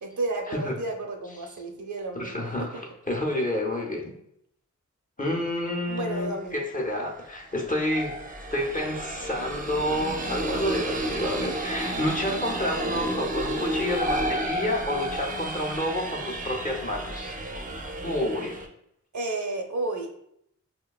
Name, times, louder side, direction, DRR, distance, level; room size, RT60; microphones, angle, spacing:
voice 1, 0.0-2.8 5.9-6.6 12.8-13.1 19.1-20.1, right 2 dB, 70° right, 2 dB, 0.6 m, -32 dB
voice 2, 2.2-4.1 5.2-8.2 8.5-17.4 18.0-18.6, left 1 dB, 25° left, 0 dB, 0.7 m, -29 dB
sound 1, 6.2-6.3 7.4-18.7, right 1 dB, 30° right, 0.5 m, -31 dB
5.2 x 2.2 x 2.3 m, 0.75 s
wide cardioid pair, 50°, 30 cm